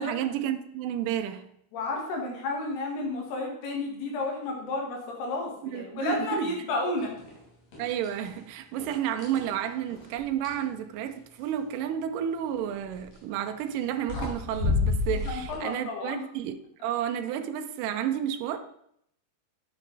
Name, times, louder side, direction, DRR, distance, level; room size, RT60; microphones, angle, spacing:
voice 1, 0.0-1.5 5.7-6.6 7.8-16.6 16.8-18.6, right 10 dB, 85° right, 1.9 m, -31 dB
voice 2, 1.7-7.1 15.2-16.2, left 2 dB, 80° left, 3.8 m, -32 dB
sound 1, 7.2-7.4 7.7-8.4 8.8-10.7 12.9-13.2 13.8-13.9 14.1-15.6, left 4 dB, 60° left, 4.0 m, -30 dB
9.9 x 7.6 x 4.0 m
omnidirectional pair, 4.6 m